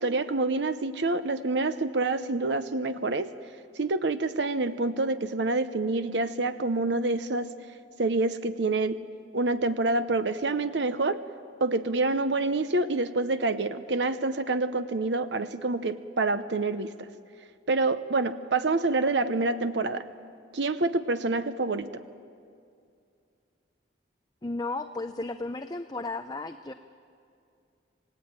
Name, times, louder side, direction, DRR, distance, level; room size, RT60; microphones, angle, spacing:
voice 1, 0.0-3.3 3.8-7.5 8.0-9.0 9.3-11.2 11.6-17.1 17.7-20.0 20.5-22.0, right 3 dB, 75° right, 11 dB, 0.8 m, -27 dB
voice 2, 24.4-26.7, left 2 dB, 20° left, 8 dB, 0.6 m, -34 dB
28.0 x 18.0 x 9.0 m, 2.4 s
head